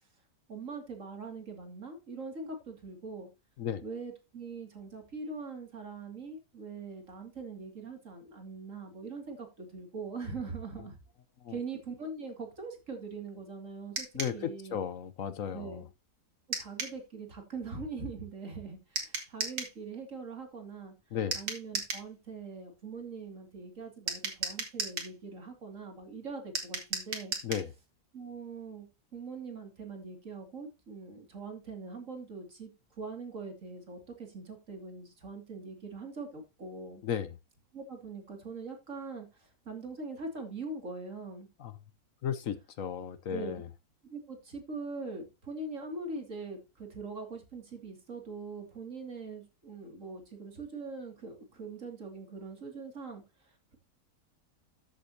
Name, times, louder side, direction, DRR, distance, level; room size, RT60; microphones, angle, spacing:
voice 1, 0.5-3.3 3.8-11.0 11.5-14.1 14.3-14.8 15.5-15.8 16.6-20.9 21.3-27.4 28.1-28.9 29.1-32.7 33.0-37.0 37.7-41.5 43.3-43.6 44.1-53.8, right 4 dB, 55° right, 3.1 m, -42 dB
sound 1, 14.0-14.4 16.5-17.0 19.0-19.8 21.3-22.1 24.1-25.1 26.6-27.7, right 4 dB, 80° right, 2.9 m, -35 dB
voice 2, 14.1-15.8 21.1-21.4 27.4-27.7 37.0-37.4 41.6-41.7 42.2-43.7, left 8 dB, 65° left, 1.1 m, -35 dB
13.5 x 7.8 x 2.9 m
omnidirectional pair, 1.6 m